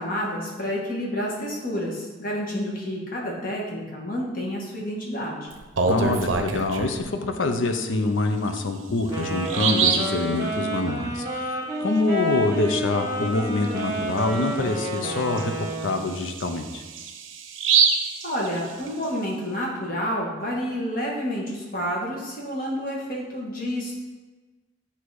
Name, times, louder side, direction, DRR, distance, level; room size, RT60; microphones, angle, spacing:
voice 1, 0.0-5.5 18.2-24.0, equal, 45° left, -3 dB, 1.4 m, -29 dB
Bird vocalization bird call bird song, 5.5-7.0 8.5-8.6 9.0-9.1 9.5-10.2 13.6-13.8 14.2-14.3 14.8-19.0, right 5 dB, 80° right, 0.6 m, -25 dB
voice 2, 5.9-16.8, left 2 dB, 80° left, 6 dB, 0.6 m, -25 dB
Wind instrument woodwind instrument, 9.0-16.2, equal, 15° right, 1.1 m, -30 dB
8.1 x 2.9 x 4.7 m, 1.2 s
head